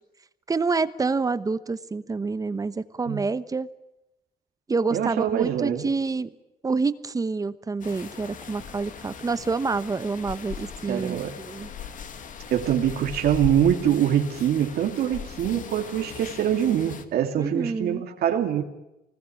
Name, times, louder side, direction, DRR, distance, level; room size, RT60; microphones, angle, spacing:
voice 1, 0.5-3.7 4.7-6.3 6.6-11.2 11.5-11.7 17.4-18.0, right 4 dB, 20° right, 14 dB, 1.0 m, -27 dB
voice 2, 4.9-5.9 10.9-11.4 12.5-18.6, right 10 dB, 75° right, 4 dB, 2.6 m, -24 dB
sound 1, 7.8-17.0, left 7 dB, 55° left, 2.1 m, -39 dB
24.5 x 20.0 x 9.9 m, 0.94 s
cardioid pair, 135°, 16 cm